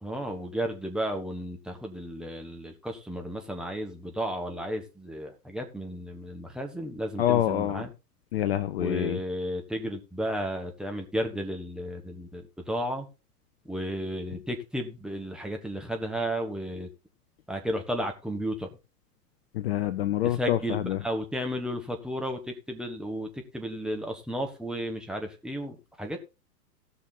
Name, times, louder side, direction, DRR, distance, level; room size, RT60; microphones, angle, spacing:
voice 1, 0.0-7.9 8.7-13.1 13.6-16.9 17.5-18.7 20.2-22.4 22.7-26.2, equal, ahead, 1.3 m, -33 dB
voice 2, 7.2-7.8 8.3-9.2 19.5-21.0, left 12 dB, 40° left, 0.6 m, -26 dB
17.0 x 6.2 x 4.0 m
figure-of-eight pair, 100°, 48 cm